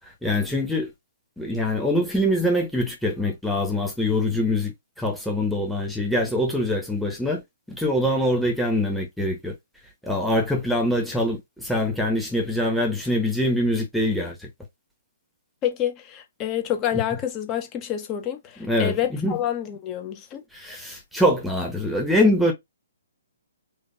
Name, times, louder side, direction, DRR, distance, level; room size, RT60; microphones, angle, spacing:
voice 1, 0.2-0.9 1.4-7.4 7.7-9.6 10.0-14.5 16.9-17.0 18.6-19.4 20.5-22.5, left 1 dB, ahead, 1.1 m, -24 dB
voice 2, 15.6-20.4, left 10 dB, 25° left, 0.9 m, -28 dB
5.0 x 2.5 x 2.7 m
figure-of-eight pair, 125°, 0 cm